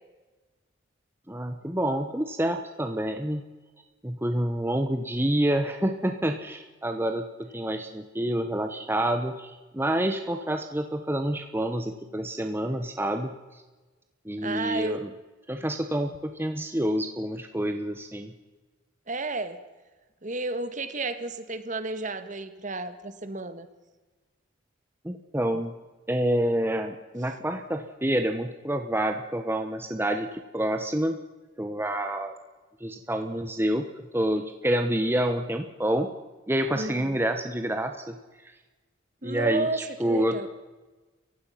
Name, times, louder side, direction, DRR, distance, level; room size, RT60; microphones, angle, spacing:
voice 1, 1.3-3.4 4.0-13.6 14.2-15.1 15.5-18.3 25.0-25.7 26.1-30.3 30.5-31.2 31.6-32.4 32.8-33.9 34.1-36.1 36.5-38.2 39.2-40.5, right 1 dB, 10° right, 6 dB, 1.0 m, -28 dB
voice 2, 14.4-15.0 19.1-19.6 20.2-23.7 36.7-37.2 39.2-40.5, right 2 dB, 40° right, 10 dB, 1.7 m, -32 dB
29.0 x 16.0 x 5.8 m, 1.2 s
head